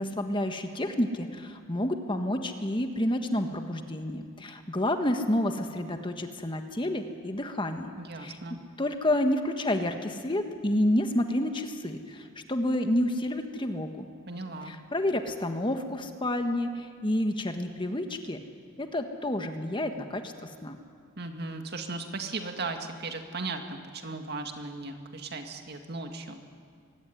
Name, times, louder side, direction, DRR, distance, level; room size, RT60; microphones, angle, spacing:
voice 1, 0.0-7.9 8.2-8.4 8.8-14.0 14.6-18.4 18.8-20.8, left 1 dB, 25° left, 6 dB, 1.5 m, -29 dB
voice 2, 8.0-8.6 14.3-14.8 21.2-26.4, right 3 dB, 55° right, 5 dB, 2.1 m, -37 dB
23.0 x 17.0 x 9.9 m, 2.1 s
head